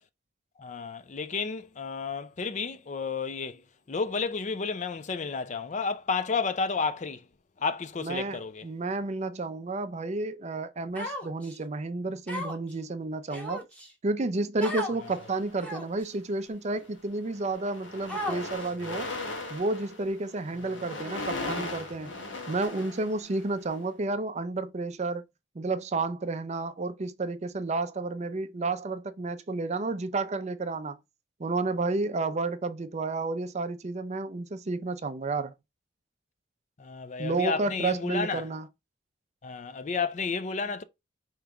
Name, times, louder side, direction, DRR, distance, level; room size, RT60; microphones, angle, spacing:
voice 1, 0.6-3.6 3.9-7.2 7.6-8.6 36.8-38.4 39.4-40.8, left 5 dB, 40° left, 0.4 m, -31 dB
voice 2, 8.0-13.6 14.0-19.1 19.5-22.1 22.5-25.2 25.6-31.0 31.4-35.5 37.2-38.7, right 3 dB, 35° right, 0.5 m, -31 dB
Human voice, 10.9-11.6 12.3-12.7 13.3-13.9 14.6-15.0 15.6-16.0 16.7-16.8 18.1-18.7, equal, 5° left, 1.1 m, -35 dB
sound 1, 15.0-16.0 16.7-17.0 17.2-23.7, left 2 dB, 85° left, 1.5 m, -39 dB
4.9 x 3.0 x 3.4 m
head